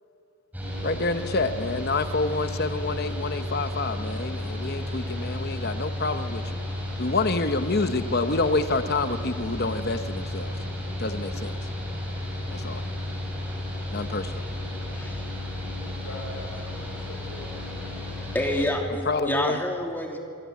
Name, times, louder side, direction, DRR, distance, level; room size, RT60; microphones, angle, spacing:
Mechanical fan, 0.5-18.7, left 1 dB, 10° right, 6.4 m, -33 dB
voice 1, 0.8-6.6 7.0-10.5 11.0-11.5 12.5-12.8 13.9-14.4 18.9-19.6, left 3 dB, 45° left, 9 dB, 0.9 m, -28 dB
voice 2, 14.9-15.3 18.0-20.2, left 1 dB, 10° left, 1 dB, 2.6 m, -29 dB
voice 3, 16.0-18.2, left 1 dB, 90° left, 0 dB, 3.9 m, -42 dB
27.0 x 23.5 x 8.4 m, 2.5 s
head